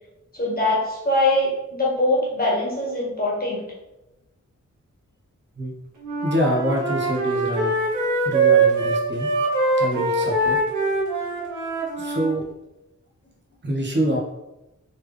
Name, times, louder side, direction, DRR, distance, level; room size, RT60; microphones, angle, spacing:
voice 1, 0.3-3.6, left 1 dB, 30° left, -4 dB, 1.5 m, -22 dB
Wind instrument woodwind instrument, 6.0-12.3, right 3 dB, 75° right, 1.1 m, -22 dB
voice 2, 6.2-7.7 8.2-9.3 9.8-10.6 12.0-12.5 13.6-14.2, equal, 35° right, -2 dB, 1.1 m, -25 dB
4.2 x 3.4 x 3.3 m, 0.94 s
wide cardioid pair, 120°, 31 cm